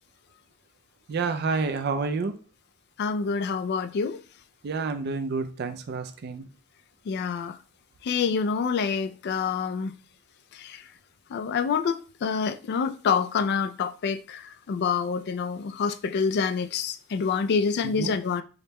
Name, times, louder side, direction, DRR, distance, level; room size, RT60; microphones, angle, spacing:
voice 1, 1.1-2.3 3.5-3.6 4.6-6.5 18.0-18.1, right 4 dB, 50° right, 0.4 m, -29 dB
voice 2, 3.0-4.2 7.1-7.6 8.0-9.9 10.6-10.8 11.3-18.4, left 5 dB, 50° left, 0.3 m, -27 dB
5.0 x 2.1 x 2.9 m
head